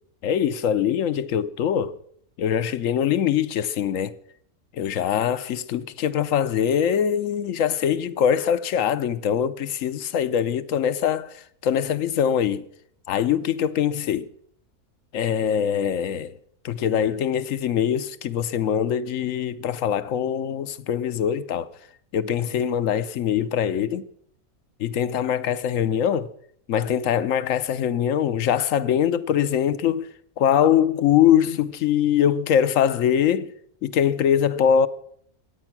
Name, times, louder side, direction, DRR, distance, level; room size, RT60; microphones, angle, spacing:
voice 1, 0.2-1.9 2.4-4.2 4.8-11.3 11.6-12.6 13.1-14.3 15.1-16.3 16.6-21.7 22.1-24.1 24.8-26.3 26.7-30.1 30.4-33.5 33.8-34.9, left 9 dB, 65° left, 1.1 m, -22 dB
23.5 x 9.2 x 6.0 m
omnidirectional pair, 1.6 m